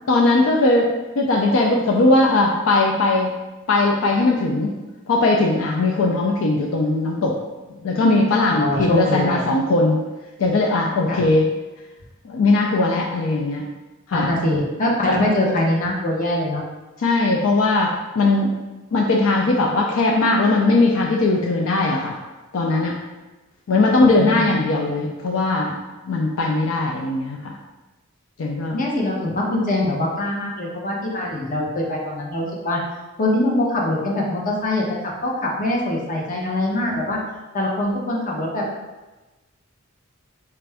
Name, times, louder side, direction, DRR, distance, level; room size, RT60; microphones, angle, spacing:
voice 1, 0.1-3.3 3.7-4.7 5.1-7.4 7.8-10.0 10.4-11.4 12.2-13.7 14.1-14.3 15.1-15.2 17.0-18.5 18.9-22.2 22.5-22.9 23.7-25.7 26.1-27.5 28.4-28.8, left 2 dB, 65° left, -1 dB, 0.4 m, -19 dB
voice 2, 8.5-9.4 11.1-11.2 14.1-16.6 24.0-24.5 28.7-32.8 33.2-34.8 35.2-37.2 37.5-38.6, left 1 dB, 40° left, -2 dB, 0.8 m, -23 dB
4.4 x 2.5 x 3.3 m, 1.1 s
head